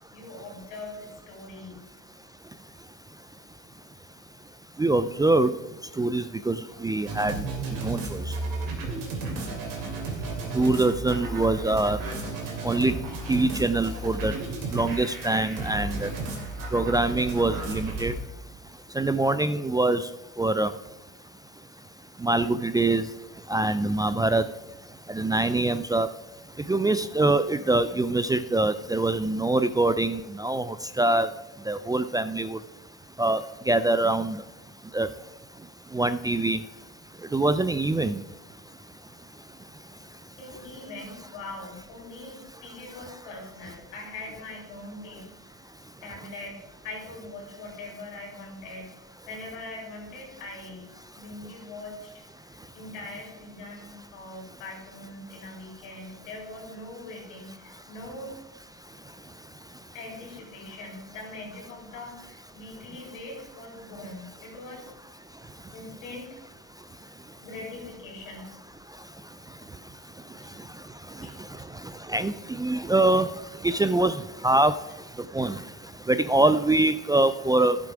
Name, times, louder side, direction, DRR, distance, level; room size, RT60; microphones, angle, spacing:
voice 1, 0.1-1.8 40.4-45.6 46.0-48.9 49.3-50.9 51.2-58.3 59.9-64.9 65.7-66.3 67.4-68.5 70.4-70.5 71.2-71.3, left 2 dB, 85° left, -2 dB, 4.0 m, -42 dB
voice 2, 4.8-5.5 6.0-7.4 7.8-8.2 10.5-12.0 12.6-12.9 13.3-14.3 14.7-16.1 16.7-18.1 19.0-20.0 20.4-20.7 22.2-23.0 23.5-24.4 25.1-26.1 26.7-31.3 31.7-32.6 33.2-33.4 33.7-34.4 34.9-35.1 35.9-36.6 37.3-38.2 72.1-73.3 73.6-74.7 75.3-75.6 76.1-77.8, right 2 dB, 10° right, 12 dB, 0.4 m, -24 dB
sound 1, 7.1-18.1, right 2 dB, 65° right, 2.9 m, -33 dB
11.5 x 7.6 x 4.8 m, 1.0 s
hypercardioid pair, 75°, 37 cm